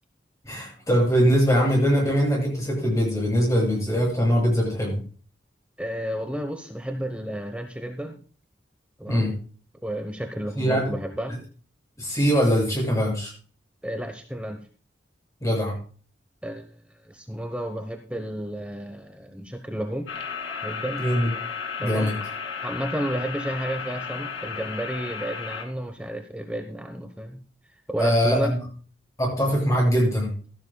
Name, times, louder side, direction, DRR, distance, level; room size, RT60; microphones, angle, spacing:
voice 1, 0.4-5.0 9.1-9.3 10.5-10.9 12.0-13.3 15.4-15.7 21.0-21.3 21.8-22.2 28.0-28.6 29.2-30.3, equal, 15° left, -2 dB, 7.4 m, -22 dB
voice 2, 5.8-8.2 9.0-9.3 9.8-11.4 13.8-14.6 16.4-16.7 17.0-20.1 20.6-21.0 21.8-22.1 22.6-27.4 27.9-28.6, equal, 5° right, 5 dB, 1.1 m, -31 dB
sound 1, 20.1-25.6, left 6 dB, 70° left, 2.6 m, -34 dB
15.0 x 12.5 x 2.3 m, 0.40 s
head